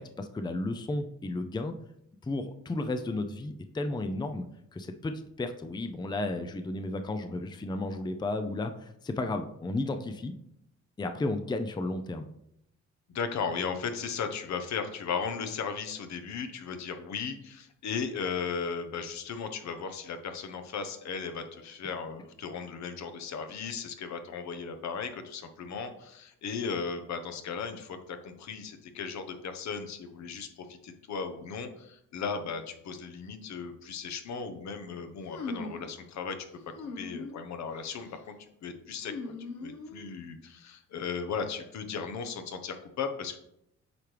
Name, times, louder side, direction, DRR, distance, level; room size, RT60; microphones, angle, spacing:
voice 1, 0.0-1.7 2.2-4.5 4.7-10.3 11.0-12.3, left 2 dB, 15° left, 7 dB, 0.5 m, -33 dB
voice 2, 13.1-36.4 37.0-38.4 38.6-39.3 39.6-43.4, left 6 dB, 65° left, 7 dB, 1.0 m, -36 dB
sound 1, 35.3-35.9 36.7-37.4 37.8-38.2 39.0-40.2, left 3 dB, 80° left, 1.3 m, -40 dB
8.5 x 4.5 x 3.3 m, 0.76 s
cardioid pair, 90°, 30 cm